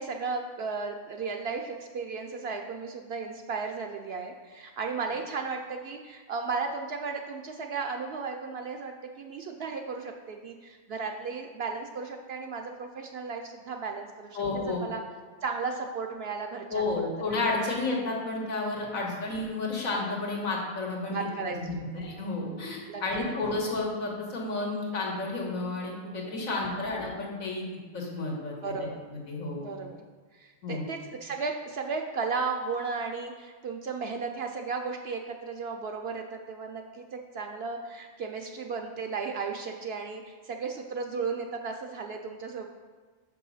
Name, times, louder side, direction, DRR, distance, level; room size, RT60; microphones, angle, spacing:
voice 1, 0.0-15.0 15.4-17.1 21.1-21.9 22.9-23.3 26.4-26.8 28.6-29.0 29.5-30.0 30.3-42.7, right 4 dB, 65° right, 3 dB, 0.6 m, -35 dB
voice 2, 14.4-14.8 16.7-21.2 21.5-27.7 27.9-28.6 29.1-29.7 30.6-30.8, left 3 dB, 80° left, -2 dB, 1.8 m, -31 dB
6.1 x 5.5 x 5.5 m, 1.4 s
omnidirectional pair, 1.4 m